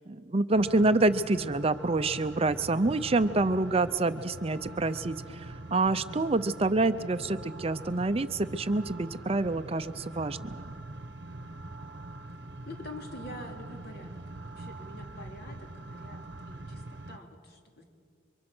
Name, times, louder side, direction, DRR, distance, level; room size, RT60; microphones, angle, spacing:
voice 1, 0.1-10.7, right 2 dB, 30° right, 11 dB, 0.6 m, -27 dB
sound 1, 0.5-17.2, right 2 dB, 60° right, 0.9 m, -43 dB
voice 2, 12.7-16.2 16.5-17.8, left 1 dB, 55° left, 2 dB, 3.3 m, -46 dB
30.0 x 24.0 x 6.1 m, 2.3 s
head